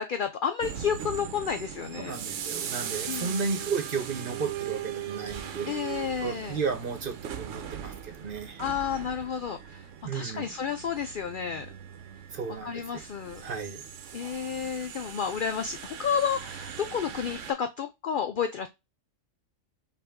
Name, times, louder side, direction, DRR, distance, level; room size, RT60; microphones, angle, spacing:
voice 1, 0.0-2.2 3.1-3.4 5.7-6.6 8.6-11.7 12.6-13.4 14.1-18.7, left 7 dB, 65° left, 7 dB, 0.5 m, -31 dB
sound 1, 0.6-17.5, right 9 dB, 70° right, 1.0 m, -39 dB
voice 2, 2.0-5.7 6.2-8.6 10.0-10.5 12.3-13.0 13.4-13.8, right 5 dB, 45° right, 7 dB, 0.9 m, -33 dB
5.5 x 2.6 x 3.5 m, 0.22 s
omnidirectional pair, 1.4 m